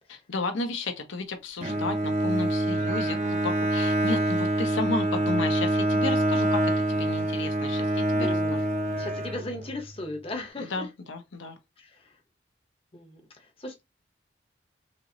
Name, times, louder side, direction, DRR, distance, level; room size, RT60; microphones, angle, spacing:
voice 1, 0.1-8.6 10.6-11.6, left 3 dB, 85° left, 0.8 m, -33 dB
Bowed string instrument, 1.6-9.8, right 1 dB, 35° right, 0.7 m, -26 dB
voice 2, 8.2-8.7 9.0-10.9 11.8-12.2 12.9-13.8, left 1 dB, 30° left, 0.8 m, -37 dB
4.3 x 2.9 x 2.7 m
head